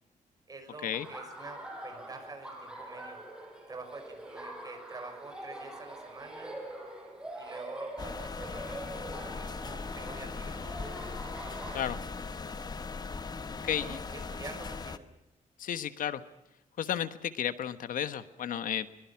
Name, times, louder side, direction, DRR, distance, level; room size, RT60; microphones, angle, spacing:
voice 1, 0.5-3.2 3.7-6.6 7.4-10.7 13.8-15.1, right 3 dB, 25° right, 6 dB, 6.2 m, -47 dB
Laughter, 0.9-11.8, right 1 dB, 5° right, 5.3 m, -44 dB
sound 1, 8.0-15.0, left 4 dB, 30° left, 1.1 m, -39 dB
voice 2, 13.6-14.0 15.6-16.2 16.8-18.9, left 9 dB, 75° left, 12 dB, 1.3 m, -33 dB
23.5 x 23.0 x 5.9 m, 0.89 s
cardioid pair, 125°, 14 cm